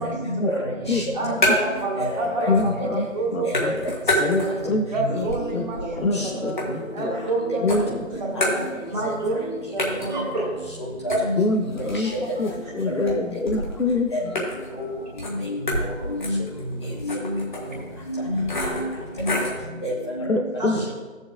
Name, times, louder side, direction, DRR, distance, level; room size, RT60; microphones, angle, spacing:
voice 1, 0.5-1.0 1.5-1.6 1.9-2.5 3.4-3.9 4.2-4.5 5.8-6.3 7.0-7.2 7.5-7.6 8.3-8.5 9.0-9.5 10.1-10.5 10.8-10.9 12.0-12.2 12.8-13.1 14.1-14.2 14.8-14.9 15.4-16.4 17.0-17.2 18.1-18.9 19.2-19.4 19.8-20.3, equal, 20° left, -4 dB, 1.2 m, -29 dB
sound 1, 0.8-1.9 2.2-2.9 3.2-4.8 5.2-7.3 7.7-9.1 9.4-9.5 9.8-19.7, left 1 dB, 35° left, 1.5 m, -30 dB
voice 2, 1.2-3.7 4.0-4.5 4.9-6.7 6.9-7.8 8.1-8.6 8.9-10.4 11.1-11.2 20.6-20.9, right 2 dB, 30° right, -3 dB, 1.8 m, -28 dB
voice 3, 2.5-3.1 3.3-3.7 4.2-5.3 5.5-5.7 6.0-7.1 7.6-8.0 11.4-12.1 12.4-14.1 20.3-20.9, left 3 dB, 90° left, 6 dB, 1.0 m, -25 dB
15.0 x 7.1 x 2.3 m, 1.3 s
figure-of-eight pair, 165°, 40 cm